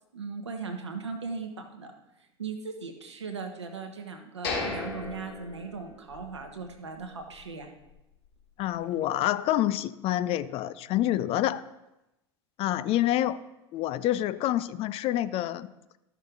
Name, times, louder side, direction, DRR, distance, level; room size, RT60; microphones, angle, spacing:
voice 1, 0.1-1.9 2.4-7.7, right 4 dB, 85° right, 4 dB, 1.3 m, -38 dB
sound 1, 4.4-6.4 6.7-6.8 7.3-7.5, left 4 dB, 70° left, 3.6 m, -35 dB
voice 2, 8.6-11.6 12.6-13.4 13.7-15.7, left 13 dB, 45° left, 15 dB, 0.5 m, -27 dB
13.0 x 6.4 x 3.8 m, 0.93 s
figure-of-eight pair, 80°, 14 cm